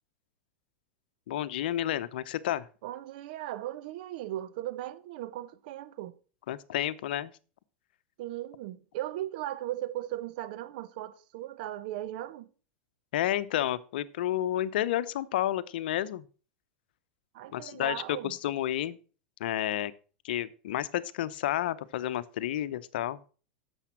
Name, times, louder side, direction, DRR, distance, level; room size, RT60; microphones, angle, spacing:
voice 1, 1.3-2.7 6.5-7.3 13.1-16.2 17.5-19.0 19.4-19.9 20.2-23.2, left 12 dB, 70° left, 0.8 m, -31 dB
voice 2, 2.8-6.2 8.2-12.5 17.3-18.3, right 14 dB, 65° right, 1.0 m, -37 dB
9.9 x 7.1 x 5.9 m
hypercardioid pair, 105°, 5 cm